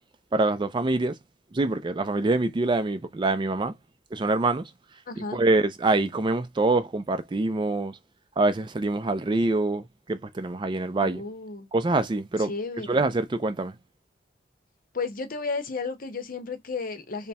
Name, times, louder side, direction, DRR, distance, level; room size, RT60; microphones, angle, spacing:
voice 1, 0.3-1.2 1.5-3.7 4.1-4.7 5.2-8.0 8.4-11.2 11.7-12.5 12.9-13.7, right 2 dB, 25° right, 0.4 m, -25 dB
voice 2, 5.1-5.4 11.0-11.7 12.5-13.0 14.9-17.3, left 4 dB, 50° left, 0.7 m, -33 dB
3.4 x 2.1 x 4.1 m
head